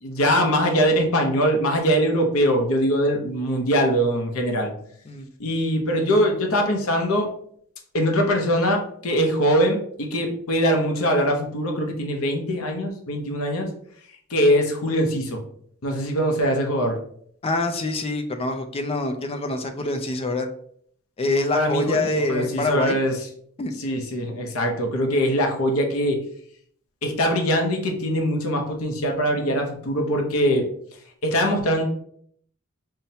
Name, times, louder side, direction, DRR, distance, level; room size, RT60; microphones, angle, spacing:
voice 1, 0.0-4.7 5.4-7.3 7.9-13.7 14.3-15.4 15.8-17.0 21.5-23.2 23.8-26.2 27.0-30.7 31.2-31.8, equal, 70° left, 3 dB, 0.7 m, -22 dB
voice 2, 17.4-20.5 21.2-23.0 23.6-23.7, left 2 dB, 25° left, 7 dB, 0.4 m, -25 dB
5.5 x 2.1 x 2.7 m, 0.64 s
head